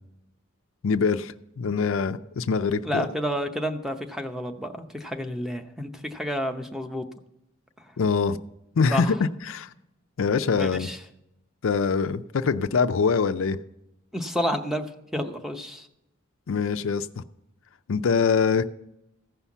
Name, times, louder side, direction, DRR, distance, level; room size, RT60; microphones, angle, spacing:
voice 1, 0.8-3.1 8.0-8.4 8.8-9.7 10.2-10.9 11.6-13.6 16.5-17.2 17.9-18.7, left 5 dB, 70° left, 11 dB, 0.5 m, -24 dB
voice 2, 2.8-7.1 8.9-9.1 10.6-11.0 14.1-14.9 15.1-15.9, equal, ahead, 6 dB, 0.7 m, -30 dB
15.0 x 5.6 x 7.1 m, 0.85 s
head